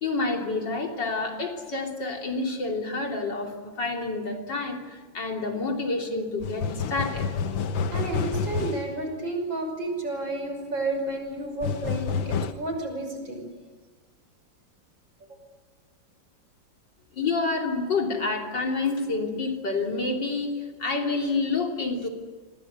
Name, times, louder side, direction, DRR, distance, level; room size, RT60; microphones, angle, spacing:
voice 1, 0.0-7.3 17.1-22.1, left 3 dB, 70° left, 2 dB, 3.9 m, -28 dB
sound 1, 6.4-8.9 11.6-12.5, left 5 dB, 85° left, 1.9 m, -28 dB
voice 2, 7.9-13.5 15.3-15.4, right 2 dB, 85° right, 4 dB, 6.6 m, -31 dB
28.5 x 24.0 x 8.2 m, 1.4 s
omnidirectional pair, 2.0 m